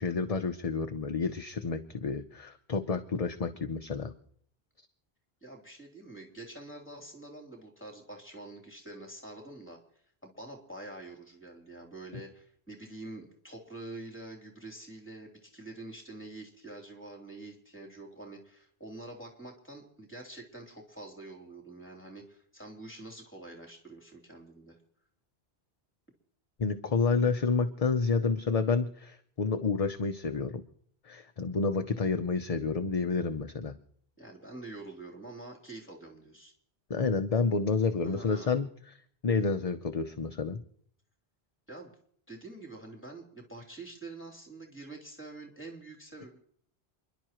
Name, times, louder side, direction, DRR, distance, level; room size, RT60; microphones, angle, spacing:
voice 1, 0.0-4.1 26.6-30.6 31.0-33.7 36.9-38.7 39.2-40.6, left 4 dB, 40° left, 8 dB, 0.7 m, -29 dB
voice 2, 5.4-9.8 10.2-24.8 34.2-36.5 38.0-38.6 41.7-41.9 42.3-46.4, right 2 dB, 10° left, 0 dB, 3.1 m, -46 dB
29.0 x 11.5 x 3.0 m, 0.63 s
omnidirectional pair, 1.1 m